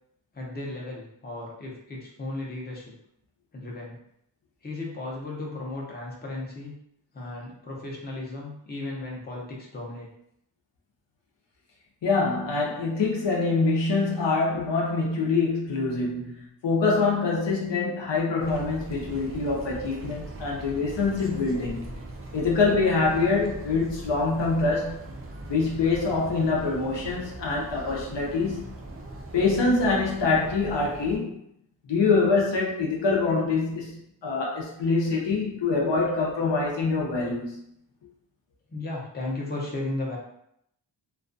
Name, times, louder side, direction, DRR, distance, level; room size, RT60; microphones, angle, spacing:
voice 1, 0.3-2.9 3.5-4.0 4.6-6.7 7.1-10.1 38.7-40.2, left 2 dB, 25° left, -3 dB, 0.6 m, -35 dB
voice 2, 12.0-21.9 22.3-25.1 25.5-28.7 29.3-31.4 31.9-37.6, left 3 dB, 75° left, -2 dB, 0.6 m, -25 dB
sound 1, 18.4-31.2, right 1 dB, 30° right, 0.4 m, -40 dB
2.3 x 2.2 x 2.5 m, 0.74 s
wide cardioid pair, 95°, 44 cm